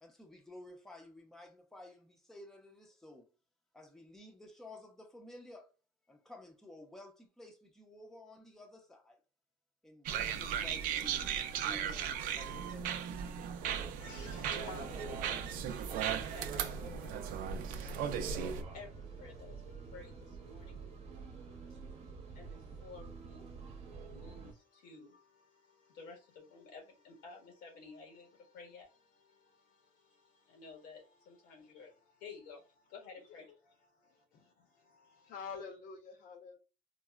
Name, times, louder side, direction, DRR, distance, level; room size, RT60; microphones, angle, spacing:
voice 1, 0.0-3.3 3.7-5.7 6.1-9.2 9.8-11.3 11.6-12.9, left 1 dB, 5° left, 0.6 m, -53 dB
sound 1, 10.1-18.6, right 8 dB, 70° right, 0.5 m, -37 dB
sound 2, 13.6-24.5, right 5 dB, 45° right, 0.8 m, -47 dB
voice 2, 13.8-33.5 33.8-35.3, left 4 dB, 90° left, 1.3 m, -54 dB
voice 3, 34.0-34.5 35.2-36.6, left 5 dB, 65° left, 0.8 m, -47 dB
3.9 x 2.0 x 2.3 m
cardioid pair, 130°, 15 cm